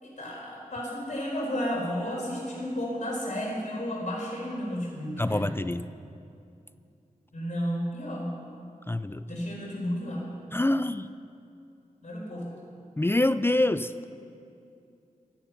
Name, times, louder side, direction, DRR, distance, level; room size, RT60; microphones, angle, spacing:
voice 1, 0.0-5.5 7.3-8.3 9.3-10.3 12.0-12.5, equal, 55° left, -4 dB, 4.4 m, -32 dB
voice 2, 5.2-5.9 8.9-9.2 10.5-11.1 13.0-13.9, left 1 dB, 15° left, 13 dB, 0.4 m, -25 dB
25.0 x 8.9 x 5.9 m, 2.6 s
wide cardioid pair, 85°, 14 cm